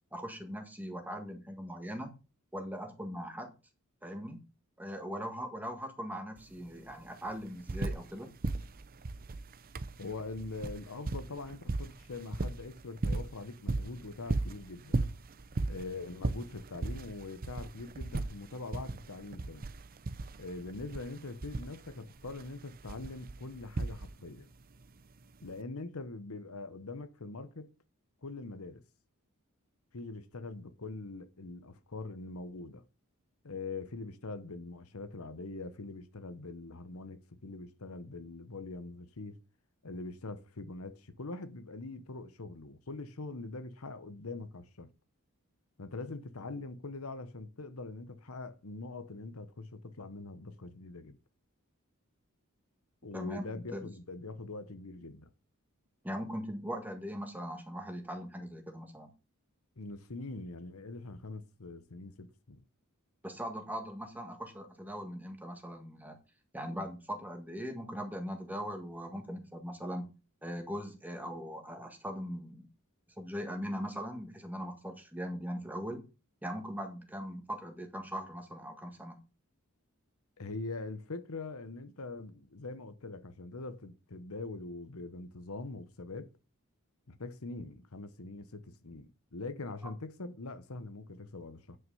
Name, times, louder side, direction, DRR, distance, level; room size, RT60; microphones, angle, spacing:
voice 1, 0.1-2.1 2.5-3.5 4.0-4.4 4.8-8.3 53.1-53.9 56.0-59.1 63.2-66.2 66.5-70.1 70.4-72.7 73.2-76.0 76.4-79.2, equal, 10° right, 1.6 m, -40 dB
sound 1, 6.4-6.5 6.7-8.2 8.4-24.4 25.5-25.6, right 3 dB, 40° right, 0.6 m, -37 dB
voice 2, 10.0-15.0 15.7-19.7 20.4-24.5 25.4-27.7 28.2-28.8 29.9-32.8 33.4-39.4 39.8-44.9 45.8-51.2 53.0-55.3 59.8-62.6 80.4-86.3 87.1-91.8, left 3 dB, 75° left, 1.0 m, -43 dB
9.5 x 5.9 x 5.5 m
head